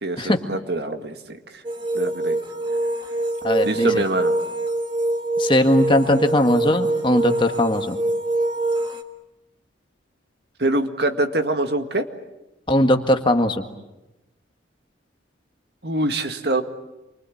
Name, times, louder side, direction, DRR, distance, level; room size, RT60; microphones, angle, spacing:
voice 1, 0.0-1.6 1.9-2.4 3.6-4.3 10.6-12.1 15.8-16.6, right 2 dB, 55° right, 7 dB, 2.0 m, -24 dB
sound 1, 1.6-9.0, right 2 dB, 25° right, 1.7 m, -24 dB
voice 2, 3.4-4.0 5.4-7.9 12.7-13.6, left 1 dB, 25° left, 6 dB, 1.7 m, -19 dB
28.5 x 24.0 x 8.6 m, 0.99 s
head